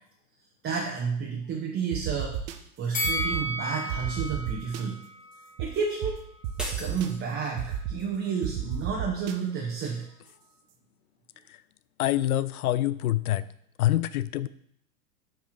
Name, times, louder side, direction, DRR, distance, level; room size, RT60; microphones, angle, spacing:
voice 1, 0.6-2.4 2.8-5.0 5.6-6.2 6.8-10.1, right 6 dB, 25° right, -1 dB, 1.1 m, -31 dB
sound 1, 1.9-2.6 3.0-3.4 3.9-4.8 5.6-5.7 6.0-6.1 6.4-7.1 7.6-8.0 8.4-9.3, right 9 dB, 50° right, 0.8 m, -31 dB
Bell, 2.9-6.1 6.5-6.6, left 1 dB, 20° left, 1.4 m, -34 dB
sound 2, 6.6-7.8, equal, ahead, 1.4 m, -39 dB
voice 2, 12.0-13.5 13.8-14.5, left 14 dB, 75° left, 17 dB, 0.5 m, -25 dB
7.7 x 3.5 x 6.0 m, 0.68 s
hypercardioid pair, 100°, 45 cm